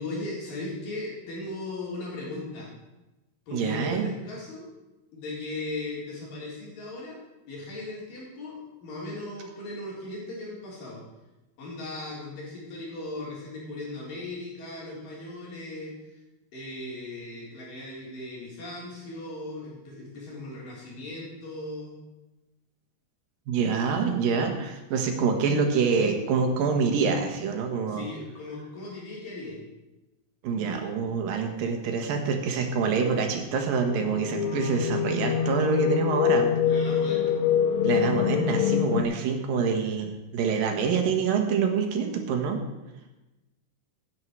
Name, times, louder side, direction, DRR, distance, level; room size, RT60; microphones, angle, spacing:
voice 1, 0.0-2.7 3.5-4.7 5.1-7.2 7.5-11.0 11.6-16.2 16.5-22.0 27.9-29.6 36.6-37.5, left 2 dB, 65° left, -5 dB, 5.3 m, -37 dB
voice 2, 3.5-4.1 23.5-28.0 30.4-36.5 37.8-42.6, right 5 dB, 75° right, 4 dB, 3.1 m, -26 dB
sound 1, 33.6-39.0, left 8 dB, 80° left, 1.8 m, -25 dB
16.0 x 9.8 x 4.7 m, 1.0 s
omnidirectional pair, 4.2 m